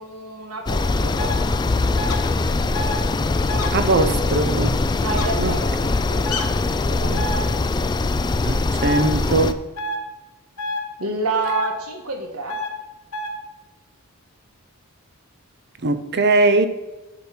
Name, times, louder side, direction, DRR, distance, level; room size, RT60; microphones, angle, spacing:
voice 1, 0.0-1.3 5.0-6.2 6.9-7.2 11.0-12.6, right 3 dB, 85° right, 1.5 m, -29 dB
sound 1, 0.7-9.5, left 3 dB, 20° left, 0.3 m, -22 dB
sound 2, 1.2-1.3 2.0-2.2 2.7-3.0 3.5-3.7 5.1-5.3 6.3-6.4 7.2-7.4 8.8-9.0 9.8-10.0 10.6-10.8 11.4-11.7 12.5-12.7 13.1-13.3, left 1 dB, 85° left, 1.3 m, -27 dB
voice 2, 3.7-4.8 5.4-5.6 8.4-9.6 15.8-16.7, right 2 dB, 50° right, 0.6 m, -20 dB
10.5 x 4.5 x 5.8 m
head